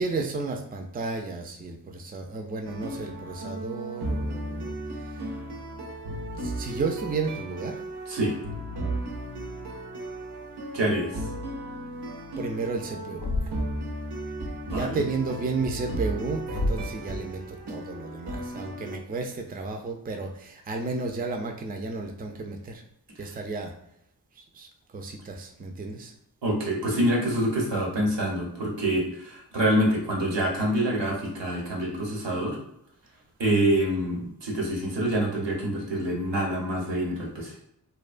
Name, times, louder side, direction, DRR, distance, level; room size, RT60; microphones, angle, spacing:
voice 1, 0.0-4.7 6.4-7.8 12.4-13.5 14.7-22.8 23.2-23.7 24.4-24.7 24.9-26.1, right 3 dB, 25° right, 3 dB, 0.4 m, -32 dB
sound 1, 2.6-19.0, right 1 dB, 65° right, 0.6 m, -35 dB
voice 2, 10.7-11.1 14.6-15.0 26.4-32.6 33.4-37.6, right 1 dB, 90° right, -2 dB, 0.9 m, -26 dB
Thump thud, 13.2-13.8 16.5-17.0, left 2 dB, 70° left, 0.5 m, -29 dB
2.7 x 2.2 x 2.4 m, 0.77 s
wide cardioid pair, 55°, 42 cm